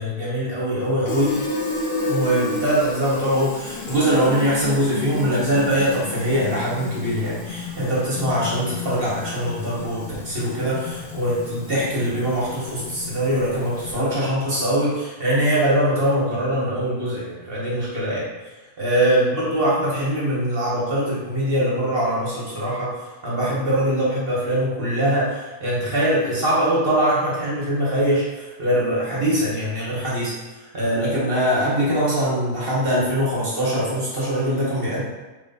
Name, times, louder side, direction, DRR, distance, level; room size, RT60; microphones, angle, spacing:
voice 1, 0.0-1.4 2.1-18.3 18.8-22.9 23.2-30.3 30.7-35.0, equal, 40° right, -7 dB, 1.2 m, -22 dB
Fill (with liquid), 1.0-14.2, left 3 dB, 55° left, 0.7 m, -32 dB
3.2 x 3.1 x 4.1 m, 1.2 s
omnidirectional pair, 1.6 m